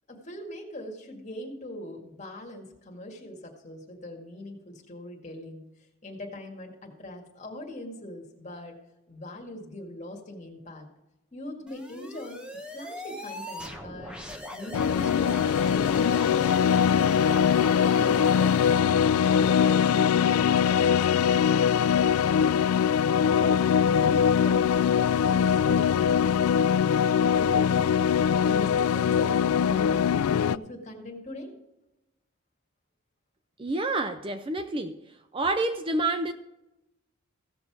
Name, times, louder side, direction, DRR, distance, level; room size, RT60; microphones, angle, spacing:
voice 1, 0.1-5.6 6.0-8.8 9.1-10.9 11.3-12.4 12.7-14.2 14.5-17.5 23.4-31.5, left 1 dB, 35° left, 0 dB, 2.0 m, -41 dB
sound 1, 11.7-18.8, left 1 dB, 5° right, 1.0 m, -40 dB
sound 2, 14.7-30.6, left 8 dB, 85° left, 0.3 m, -22 dB
voice 2, 33.6-35.0 35.3-36.3, right 2 dB, 25° right, 9 dB, 0.4 m, -28 dB
16.0 x 6.8 x 4.7 m, 0.95 s
head